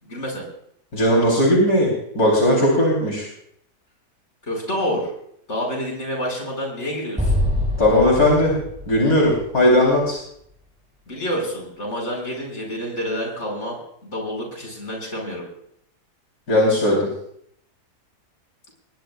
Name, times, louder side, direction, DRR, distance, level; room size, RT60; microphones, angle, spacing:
voice 1, 0.0-0.4 4.4-5.1 5.5-7.3 11.1-15.4, equal, 45° left, -1 dB, 5.8 m, -28 dB
voice 2, 0.9-1.9 2.1-3.3 7.8-8.5 8.9-10.2 16.5-17.1, left 1 dB, 70° left, -3 dB, 4.2 m, -17 dB
Explosion, 7.2-10.5, left 1 dB, 5° right, 5.3 m, -26 dB
21.5 x 20.0 x 2.4 m, 0.70 s
omnidirectional pair, 1.7 m